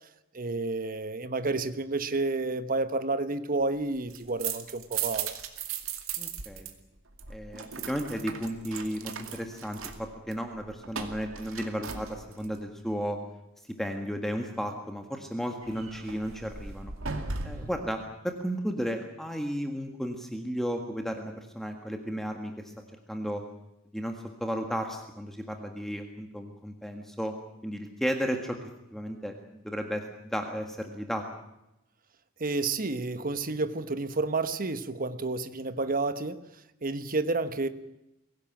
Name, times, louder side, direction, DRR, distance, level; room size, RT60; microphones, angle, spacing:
voice 1, 0.3-5.3 17.5-17.7 32.4-36.4 36.8-37.7, right 3 dB, 45° right, 10 dB, 1.2 m, -30 dB
sound 1, 3.9-6.7 7.0-12.6 15.6-17.8, right 6 dB, 70° right, 2.3 m, -37 dB
voice 2, 6.2-6.7 7.3-13.2 13.8-16.9 17.4-22.5 23.1-23.4 23.9-27.3 27.6-30.0 30.3-31.2, equal, ahead, 4 dB, 1.7 m, -34 dB
23.0 x 17.0 x 9.0 m, 0.89 s
head